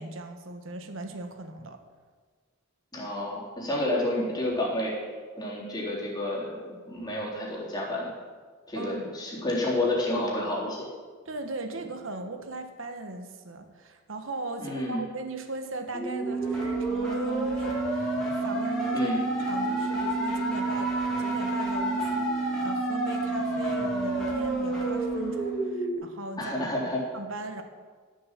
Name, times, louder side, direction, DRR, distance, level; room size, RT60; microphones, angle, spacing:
voice 1, 0.0-1.8 8.7-9.0 11.3-19.1 19.5-26.7 27.1-27.6, right 2 dB, 70° right, 6 dB, 1.3 m, -38 dB
voice 2, 2.9-5.1 5.4-8.1 8.7-10.9 14.6-15.0 18.9-19.2 26.4-27.0, left 1 dB, 20° left, -5 dB, 3.6 m, -30 dB
sound 1, 15.9-25.9, right 2 dB, 5° left, 3.0 m, -29 dB
13.5 x 7.8 x 7.4 m, 1.6 s
head